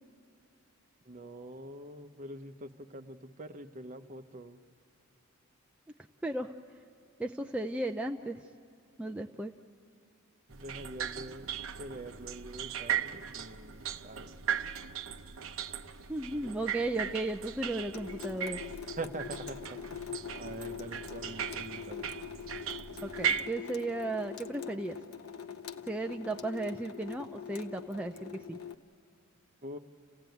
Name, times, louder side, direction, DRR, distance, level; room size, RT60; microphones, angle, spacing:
voice 1, 1.0-4.6 10.5-11.5 11.8-14.3 16.4-16.6 19.0-22.1 29.6-29.8, right 1 dB, 35° right, 7 dB, 1.0 m, -44 dB
voice 2, 6.2-6.5 7.2-8.4 9.0-9.5 16.1-18.8 23.0-25.0 25.9-28.6, right 2 dB, 5° right, 3 dB, 0.5 m, -35 dB
sound 1, 10.5-23.5, right 8 dB, 65° right, 0.7 m, -38 dB
Water tap faucet / Sink (filling or washing) / Drip, 17.9-28.7, left 7 dB, 90° left, 0.9 m, -44 dB
29.5 x 16.0 x 9.3 m, 2.6 s
head